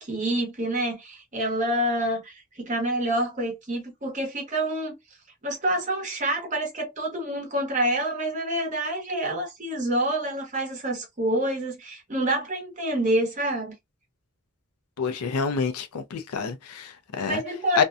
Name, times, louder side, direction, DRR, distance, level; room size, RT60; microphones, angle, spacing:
voice 1, 0.0-5.0 5.4-13.7 17.2-17.8, right 1 dB, 35° right, 0.9 m, -27 dB
voice 2, 15.0-17.4 17.8-17.9, left 5 dB, 85° left, 0.5 m, -27 dB
2.6 x 2.2 x 2.4 m
head